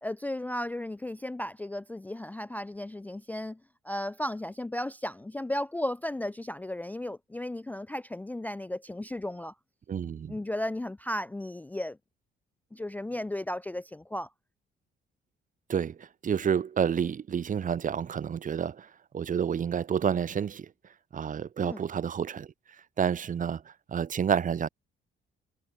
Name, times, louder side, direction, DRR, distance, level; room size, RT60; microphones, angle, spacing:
voice 1, 0.0-3.6 3.8-9.5 10.3-12.0 12.7-14.3 21.6-21.8, left 1 dB, 10° left, 0.4 m, -35 dB
voice 2, 9.9-10.3 15.7-18.9 19.1-20.7 21.1-22.5 23.0-24.7, right 7 dB, 40° right, 0.8 m, -29 dB
cardioid pair, 90°, 20 cm